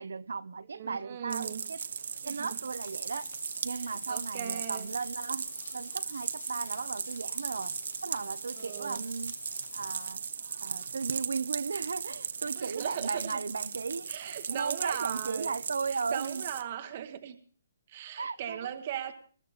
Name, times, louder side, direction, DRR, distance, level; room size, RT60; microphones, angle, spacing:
voice 1, 0.0-1.8 2.2-3.3 3.6-9.4 9.7-10.2 10.6-16.4 18.2-18.6, right 5 dB, 90° right, 0.8 m, -36 dB
voice 2, 0.7-1.6 2.2-2.6 3.7-4.9 8.6-9.0 12.6-13.4 14.1-15.6 15.9-17.4 17.9-19.1, right 10 dB, 30° right, 1.0 m, -39 dB
sound 1, 1.3-16.6, right 6 dB, 60° right, 1.1 m, -37 dB
Bathtub (filling or washing), 2.1-10.1, left 5 dB, 70° left, 1.3 m, -49 dB
20.0 x 14.5 x 4.1 m
hypercardioid pair, 175°, 0 cm